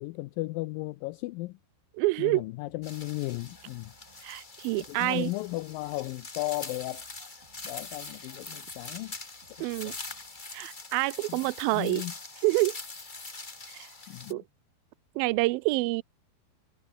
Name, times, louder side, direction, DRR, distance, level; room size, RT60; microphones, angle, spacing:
voice 1, 0.0-1.6 2.2-3.9 4.8-7.1 7.6-9.2 9.8-10.0 11.3-11.4 11.7-12.1 14.1-14.4, left 20 dB, 80° left, 2.0 m, -35 dB
voice 2, 2.0-2.4 4.2-5.3 9.6-9.9 10.5-12.0 12.4-12.8 13.7-13.9 14.3-14.4 15.2-16.0, right 22 dB, 85° right, 2.2 m, -27 dB
sound 1, 2.7-10.7, right 4 dB, 65° right, 9.2 m, -64 dB
sound 2, 2.8-14.3, left 3 dB, 50° left, 0.5 m, -43 dB
omnidirectional pair, 4.6 m